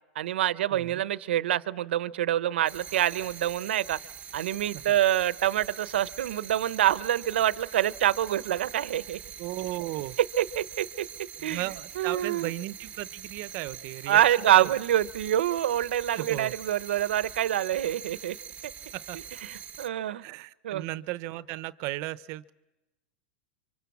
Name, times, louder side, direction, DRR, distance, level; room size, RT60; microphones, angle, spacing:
voice 1, 0.1-4.0 4.3-9.2 10.2-11.7 12.0-12.5 14.1-18.4 19.1-20.2 20.6-20.8, right 12 dB, 85° right, 15 dB, 0.8 m, -26 dB
voice 2, 0.7-1.0 9.4-10.2 11.4-14.2 14.5-14.7 16.2-16.5 18.9-19.2 20.2-22.5, right 17 dB, 50° right, 15 dB, 0.8 m, -35 dB
sound 1, 2.6-19.9, right 9 dB, 20° right, 1.0 m, -44 dB
27.0 x 25.0 x 7.2 m, 0.97 s
supercardioid pair, 125°, 6 cm